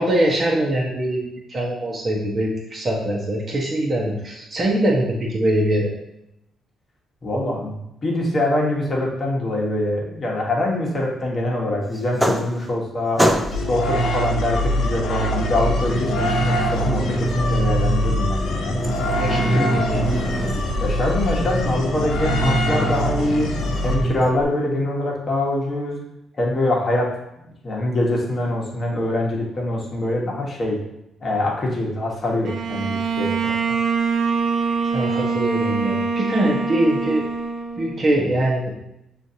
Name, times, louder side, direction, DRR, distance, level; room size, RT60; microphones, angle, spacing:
voice 1, 0.0-5.9 19.1-20.1 34.9-37.2 37.8-38.7, right 1 dB, 35° right, -3 dB, 0.9 m, -22 dB
voice 2, 7.2-7.8 8.0-13.2 13.7-18.7 19.3-19.7 20.8-23.5 23.8-26.0 26.4-27.1 27.4-30.8 31.2-33.5, left 1 dB, 35° left, -2 dB, 1.2 m, -24 dB
sound 1, 11.9-12.9 13.2-13.8 15.0-24.3, right 1 dB, 5° right, 0.4 m, -25 dB
sound 2, 13.5-24.4, equal, 75° left, 0.6 m, -24 dB
Bowed string instrument, 32.4-38.2, right 5 dB, 60° right, 0.6 m, -24 dB
6.3 x 2.5 x 2.7 m, 0.84 s
cardioid pair, 90°, 0 cm